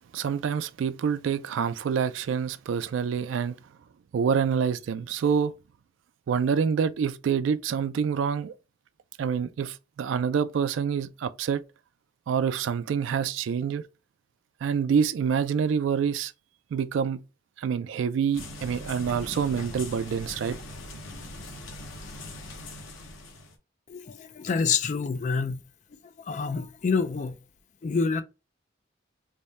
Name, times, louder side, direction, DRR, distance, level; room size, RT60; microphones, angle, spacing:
voice 1, 0.1-3.6 4.1-5.5 6.3-8.5 9.2-11.6 12.3-13.8 14.6-16.3 16.7-17.2 17.6-20.6, right 7 dB, 75° right, 0.3 m, -27 dB
sound 1, 18.3-23.5, left 1 dB, 85° left, 0.8 m, -41 dB
voice 2, 23.9-25.6 26.2-27.4 27.8-28.2, left 5 dB, 40° left, 0.3 m, -27 dB
3.4 x 2.1 x 4.0 m
head